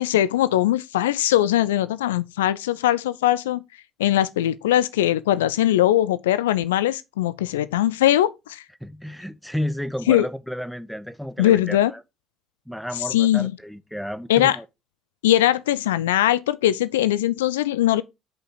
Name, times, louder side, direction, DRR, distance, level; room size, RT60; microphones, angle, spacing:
voice 1, 0.0-3.6 4.0-8.6 10.1-10.3 11.4-11.9 13.1-13.5 14.3-14.6 15.2-18.0, left 13 dB, 75° left, 0.3 m, -20 dB
voice 2, 8.8-12.0 12.7-14.6, equal, ahead, 0.8 m, -32 dB
6.1 x 5.4 x 4.9 m
figure-of-eight pair, 55°, 0 cm